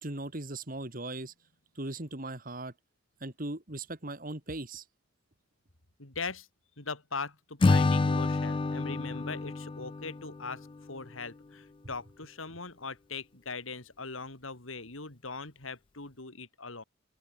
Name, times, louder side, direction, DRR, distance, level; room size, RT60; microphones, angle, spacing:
voice 1, 0.0-1.3 1.8-2.7 3.2-4.8, right 2 dB, 45° right, 2.5 m, -38 dB
voice 2, 6.0-6.5 6.8-16.8, left 4 dB, 85° left, 3.8 m, -40 dB
Acoustic guitar / Strum, 7.6-10.9, left 3 dB, 25° left, 0.3 m, -28 dB
open air
head